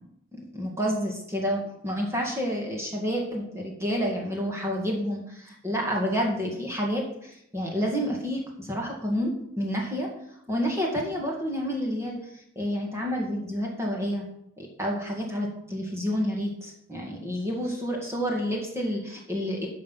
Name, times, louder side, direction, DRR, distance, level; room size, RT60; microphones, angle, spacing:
voice 1, 0.3-10.1 10.5-14.2 14.6-19.7, equal, 15° right, -1 dB, 1.9 m, -29 dB
13.5 x 5.7 x 5.6 m, 0.72 s
head